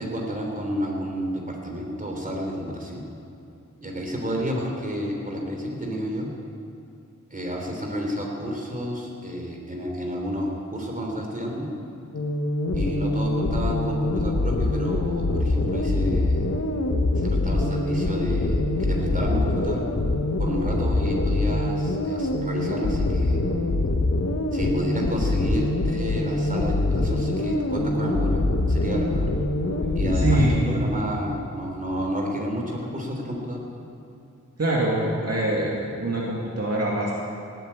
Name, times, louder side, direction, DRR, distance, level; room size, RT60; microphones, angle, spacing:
voice 1, 0.0-3.0 3.8-6.3 7.3-11.7 12.7-16.5 17.2-19.9 20.4-23.4 24.5-29.3 30.0-33.6, equal, 25° right, 0 dB, 3.5 m, -30 dB
sound 1, 12.1-30.6, left 2 dB, 50° left, 1.4 m, -24 dB
voice 2, 30.1-30.8 34.6-37.1, right 1 dB, 50° right, -4 dB, 2.4 m, -24 dB
18.0 x 9.3 x 8.6 m, 2.7 s
wide cardioid pair, 70°, 31 cm